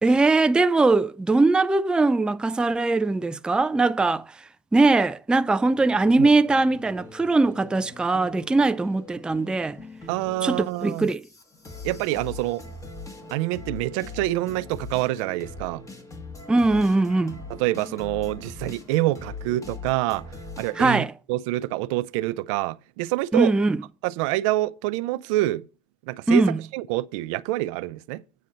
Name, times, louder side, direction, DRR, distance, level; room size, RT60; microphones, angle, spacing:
voice 1, 0.0-4.3 4.7-9.8 10.4-11.3 16.5-17.4 20.8-21.1 23.3-23.8 26.3-26.6, right 3 dB, 5° right, 0.3 m, -21 dB
sound 1, 5.7-20.9, left 3 dB, 20° left, 1.6 m, -41 dB
voice 2, 10.1-11.1 11.8-12.6 13.3-15.8 17.5-20.2 20.6-23.5 24.0-25.6 26.1-26.4 26.7-28.2, right 17 dB, 80° right, 0.5 m, -26 dB
9.2 x 4.2 x 6.5 m
supercardioid pair, 105°, 16 cm